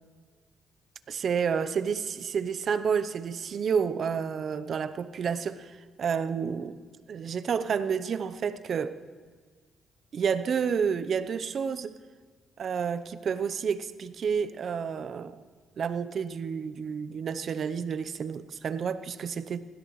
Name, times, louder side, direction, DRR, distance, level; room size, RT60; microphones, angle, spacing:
voice 1, 1.1-6.8 7.1-9.0 10.1-12.0 12.6-15.4 15.8-19.6, right 6 dB, 55° right, 0.7 m, -30 dB
20.5 x 16.5 x 3.2 m
cardioid pair, 90°, 0 cm